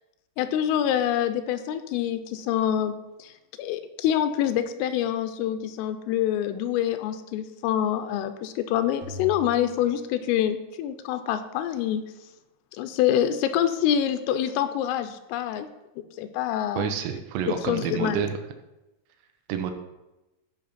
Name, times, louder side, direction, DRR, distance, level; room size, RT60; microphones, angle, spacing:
voice 1, 0.4-2.9 3.2-3.3 3.6-12.0 12.7-15.7 16.2-16.9 17.5-18.2, left 10 dB, 85° left, 9 dB, 3.1 m, -26 dB
sound 1, 9.0-11.2, right 1 dB, 60° right, 1.7 m, -42 dB
voice 2, 16.7-18.4 19.5-19.7, right 8 dB, 90° right, 6 dB, 3.4 m, -28 dB
15.0 x 5.1 x 4.1 m, 0.99 s
omnidirectional pair, 5.9 m